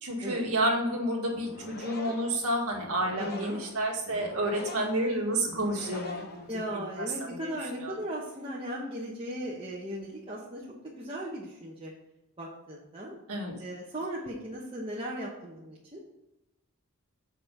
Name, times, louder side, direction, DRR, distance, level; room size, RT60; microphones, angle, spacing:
voice 1, 0.0-6.4 7.0-7.5 7.8-7.9 13.3-13.5, right 1 dB, 85° right, 0 dB, 1.9 m, -30 dB
sound 1, 1.3-7.0, left 2 dB, 45° left, 0.9 m, -44 dB
voice 2, 3.2-3.6 6.5-11.9 12.4-13.2 13.6-16.0, equal, 25° right, -5 dB, 1.1 m, -37 dB
6.8 x 5.3 x 5.3 m, 0.94 s
head